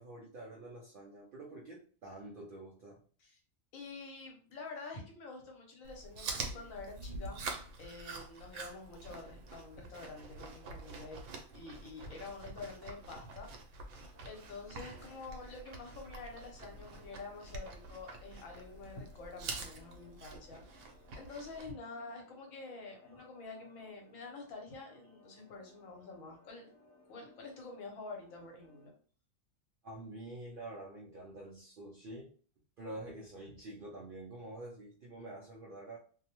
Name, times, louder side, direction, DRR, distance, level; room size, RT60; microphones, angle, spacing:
voice 1, 0.0-3.0 23.1-23.3 29.8-32.3 32.8-36.0, right 1 dB, 70° right, -1 dB, 0.5 m, -47 dB
voice 2, 3.7-7.5 7.8-11.2 11.5-13.5 13.8-13.9 14.2-20.9 21.1-26.7 27.1-28.9 32.9-33.0, left 3 dB, 75° left, 1 dB, 1.2 m, -48 dB
Chewing mastication, 5.8-21.7, right 3 dB, 90° right, 1.0 m, -46 dB
sound 1, 14.1-28.9, left 2 dB, 20° left, 0.4 m, -64 dB
2.6 x 2.1 x 2.8 m, 0.43 s
omnidirectional pair, 1.4 m